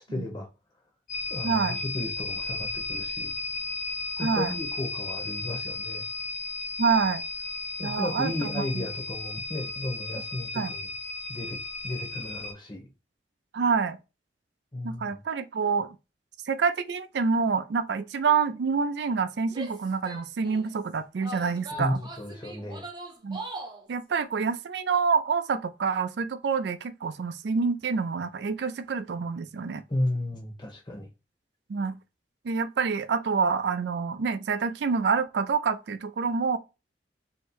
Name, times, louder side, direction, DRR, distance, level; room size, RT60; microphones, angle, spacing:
voice 1, 0.1-0.5 1.3-3.3 4.2-6.1 7.8-10.9 11.3-11.6 11.8-12.9 14.7-15.2 21.7-22.8 29.9-31.1, left 1 dB, 25° left, 1.0 m, -34 dB
sound 1, 1.1-12.5, left 3 dB, 50° left, 1.0 m, -34 dB
voice 2, 1.4-1.8 4.2-4.5 6.8-7.2 7.8-8.8 10.5-10.7 13.5-14.0 14.8-16.0 16.5-22.0 23.2-23.4 23.9-29.8 31.7-31.9 32.4-36.6, right 5 dB, 70° right, 0.4 m, -27 dB
Female speech woman speaking / Yell, 19.5-20.7 21.2-23.9, right 2 dB, 25° right, 0.8 m, -40 dB
3.1 x 2.7 x 4.5 m
head